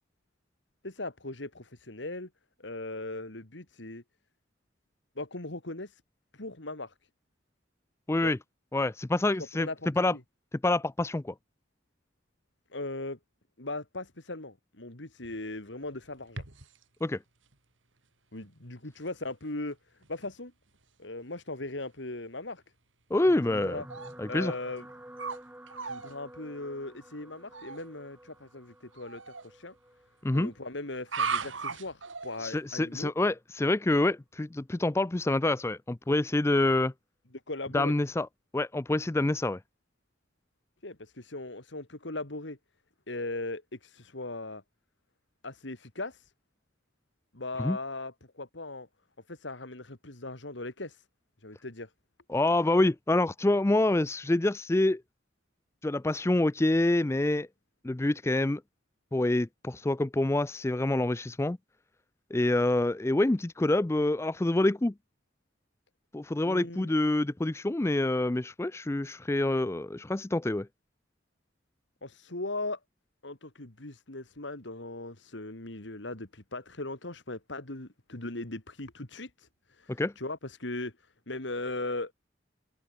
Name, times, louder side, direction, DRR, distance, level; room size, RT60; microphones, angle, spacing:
voice 1, 0.8-2.3 2.6-4.0 5.2-6.0 6.3-6.9 8.2-8.4 9.4-10.2 12.7-13.2 13.6-16.4 18.3-19.8 20.1-20.5 21.0-22.6 23.5-23.9 24.3-24.9 25.8-29.7 30.3-33.1 37.5-37.9 40.8-42.6 43.1-44.6 45.4-46.3 47.3-48.9 49.3-51.0 51.4-51.9 66.4-66.9 72.0-72.8 73.2-82.1, left 2 dB, 70° left, 2.7 m, -39 dB
voice 2, 8.1-8.4 8.7-9.7 10.0-10.1 10.6-11.3 17.0-17.2 23.1-23.8 24.2-24.5 30.2-30.5 32.4-36.9 37.7-38.3 38.5-39.6 47.6-47.8 52.3-55.0 55.8-57.5 57.8-58.6 59.1-61.6 62.3-64.9 66.1-70.7 80.0-80.1, left 2 dB, 15° left, 0.4 m, -26 dB
sound 1, 15.2-16.8 17.5-17.6 18.4-18.5 19.1-19.3 19.7-19.8 20.0-20.3 20.8-20.9 23.9-24.1 24.8-25.4 25.7-26.1 27.5-27.8 28.9-29.5 31.0-32.6, right 5 dB, 80° right, 2.9 m, -37 dB
evil space, 23.1-31.6 32.3-32.6 32.9-33.0, right 1 dB, 10° right, 3.0 m, -50 dB
head